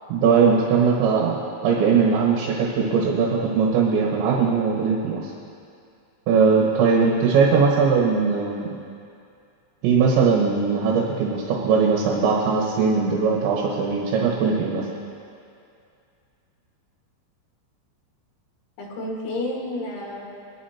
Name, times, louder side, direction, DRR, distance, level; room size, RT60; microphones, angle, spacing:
voice 1, 0.1-5.3 6.3-8.7 9.8-14.9, right 5 dB, 75° right, -2 dB, 3.4 m, -20 dB
voice 2, 18.8-20.3, left 1 dB, 85° left, -2 dB, 4.3 m, -31 dB
21.5 x 11.0 x 2.9 m, 2.5 s
omnidirectional pair, 5.4 m